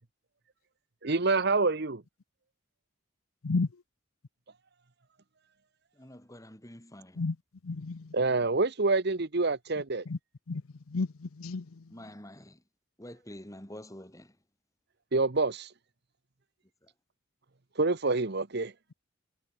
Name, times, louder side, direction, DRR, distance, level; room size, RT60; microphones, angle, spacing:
voice 1, 1.0-2.0 8.1-10.0 15.1-15.7 17.8-18.7, right 3 dB, 50° right, 1.1 m, -27 dB
voice 2, 5.9-7.3 11.9-12.6 13.0-14.4 16.8-16.9, left 1 dB, 15° left, 3.3 m, -47 dB
voice 3, 7.6-8.1 10.1-10.2 10.5-10.6 10.9-11.8, left 3 dB, 85° left, 0.7 m, -32 dB
head